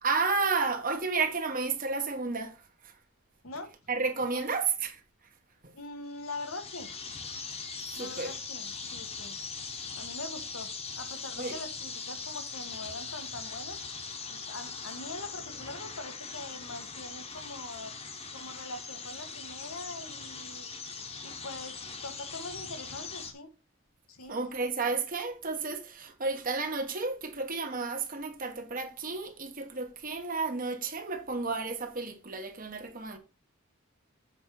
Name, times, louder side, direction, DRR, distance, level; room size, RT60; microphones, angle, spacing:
voice 1, 0.0-2.6 3.9-5.0 7.9-8.3 11.4-11.5 24.3-33.2, right 4 dB, 40° right, 1.4 m, -32 dB
voice 2, 5.7-6.9 8.0-9.6 9.9-10.7 11.0-13.8 14.3-17.9 18.3-20.7 21.2-23.5 24.1-24.4, left 2 dB, 90° left, 1.5 m, -43 dB
sound 1, 6.1-23.3, left 5 dB, 30° left, 1.2 m, -41 dB
7.6 x 5.1 x 4.6 m
head